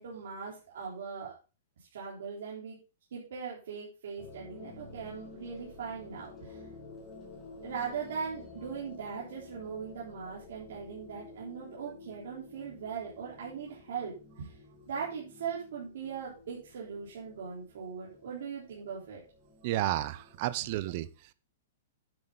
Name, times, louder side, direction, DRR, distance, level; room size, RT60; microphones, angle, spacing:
voice 1, 0.0-1.3 1.9-2.8 3.1-6.6 7.6-14.6 14.9-19.2, right 6 dB, 70° right, -6 dB, 3.6 m, -40 dB
sound 1, 4.2-20.6, left 3 dB, 15° left, 3.2 m, -51 dB
voice 2, 19.6-21.3, right 15 dB, 35° right, 17 dB, 0.5 m, -32 dB
9.7 x 7.8 x 3.9 m, 0.33 s
hypercardioid pair, 170°, 0 cm